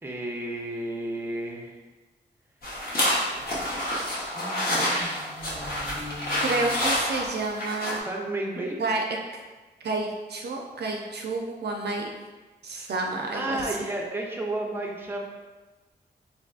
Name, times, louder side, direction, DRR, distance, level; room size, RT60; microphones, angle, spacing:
voice 1, 0.0-1.8 4.3-6.7 8.0-8.8 13.3-15.2, right 1 dB, 10° right, -1 dB, 0.6 m, -33 dB
sound 1, 2.6-8.0, left 1 dB, 55° left, 0.9 m, -28 dB
voice 2, 6.4-8.0 8.8-9.0 9.8-12.1 12.6-13.9, right 3 dB, 65° right, 0 dB, 0.4 m, -30 dB
3.4 x 2.6 x 2.4 m, 1.2 s
cardioid pair, 55°, 18 cm